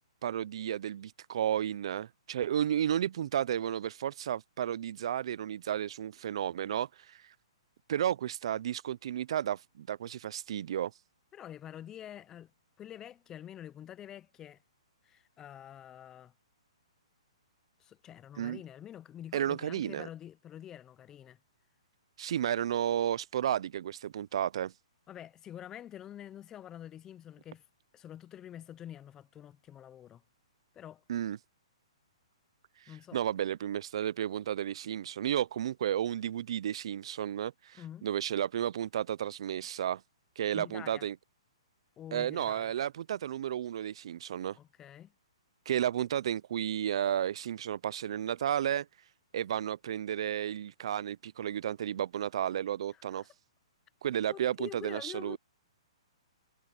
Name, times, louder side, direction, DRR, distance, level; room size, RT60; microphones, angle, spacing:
voice 1, 0.2-7.3 7.9-10.9 18.4-18.6 19.3-20.1 22.2-24.7 31.1-31.4 33.1-40.0 40.4-41.1 42.1-44.6 45.7-48.9 49.3-53.2 54.0-55.4, right 10 dB, 60° right, 0.5 m, -32 dB
voice 2, 11.3-12.5 12.8-14.6 15.0-16.3 17.8-21.4 25.1-27.6 27.9-30.2 30.7-31.0 32.9-33.2 37.7-38.1 40.5-41.1 42.0-42.7 44.5-45.1 52.9-53.3 54.3-55.4, left 10 dB, 15° left, 0.6 m, -47 dB
hypercardioid pair, 150°, 3 cm